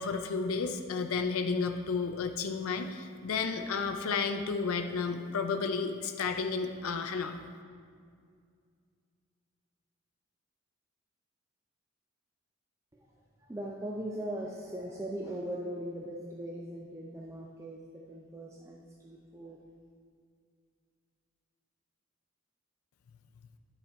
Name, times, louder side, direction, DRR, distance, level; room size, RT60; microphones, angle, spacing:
voice 1, 0.0-7.4, left 5 dB, 85° left, 6 dB, 0.5 m, -32 dB
voice 2, 13.4-19.6, right 1 dB, 15° right, -2 dB, 0.4 m, -40 dB
10.0 x 4.2 x 4.4 m, 2.2 s
head